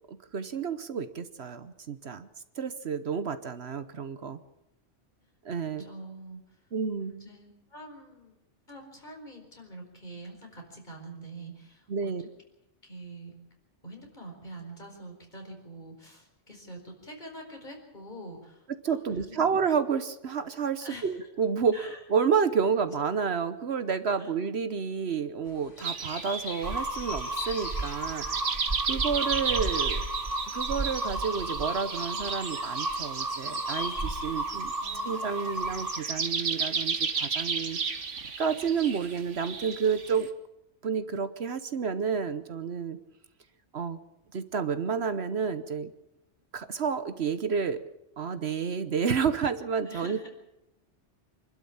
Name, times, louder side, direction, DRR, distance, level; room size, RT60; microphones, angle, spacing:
voice 1, 0.1-2.3 2.6-4.4 5.4-5.9 6.7-7.1 11.9-12.2 18.8-28.2 28.8-30.0 30.5-34.7 35.0-37.8 38.4-40.3 40.8-43.0 43.7-44.0 44.3-45.9 46.5-47.8 48.2-50.3, right 6 dB, 65° right, 12 dB, 1.2 m, -30 dB
voice 2, 5.8-6.4 7.0-8.4 8.7-12.1 12.8-13.4 13.8-19.4 20.8-21.1 21.7-22.0 24.2-24.3 34.8-35.6 49.9-50.3, right 1 dB, 40° left, 1 dB, 5.0 m, -45 dB
sound 1, 25.4-34.3, left 2 dB, 75° left, 4.8 m, -44 dB
sound 2, 25.8-40.3, right 5 dB, 80° right, 1.7 m, -34 dB
sound 3, 26.6-36.0, right 2 dB, 30° right, 1.8 m, -33 dB
26.0 x 12.0 x 8.8 m, 0.89 s
omnidirectional pair, 1.2 m